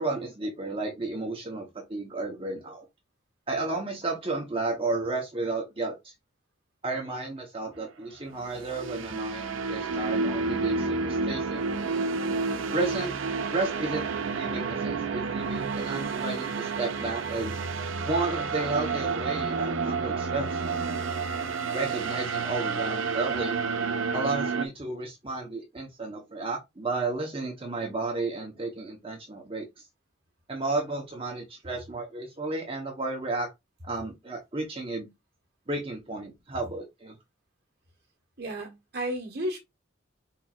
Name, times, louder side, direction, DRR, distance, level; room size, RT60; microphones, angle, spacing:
voice 1, 0.0-2.9 3.5-6.1 6.8-11.7 12.7-13.1 13.5-14.1 14.3-17.6 18.0-20.6 21.7-23.6 24.1-29.9 30.5-33.5 33.8-35.1 35.7-37.2, right 3 dB, 30° right, 0.9 m, -32 dB
sound 1, 8.4-24.7, right 4 dB, 85° right, 0.6 m, -30 dB
voice 2, 38.4-39.6, equal, 55° right, 1.6 m, -32 dB
4.5 x 4.4 x 2.4 m
head